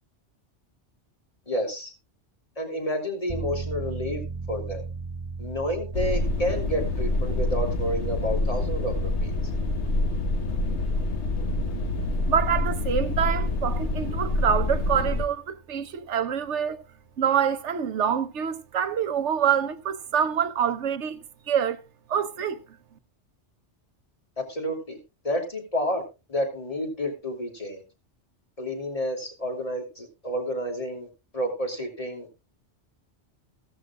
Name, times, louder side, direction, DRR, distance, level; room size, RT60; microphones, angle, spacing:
voice 1, 1.5-1.9 2.6-4.2 4.5-4.8 5.4-9.3 24.4-25.0 25.2-26.0 26.3-27.8 28.6-31.1 31.3-32.3, equal, 30° left, 2.9 m, -30 dB
sound 1, 3.3-15.8 16.2-16.3, right 4 dB, 20° right, 1.6 m, -39 dB
sound 2, 5.9-15.3, left 2 dB, 70° left, 1.5 m, -26 dB
voice 2, 12.3-16.8 17.2-21.2 21.5-21.8 22.1-22.6, right 8 dB, 80° right, 1.1 m, -26 dB
15.5 x 13.5 x 2.4 m
omnidirectional pair, 1.2 m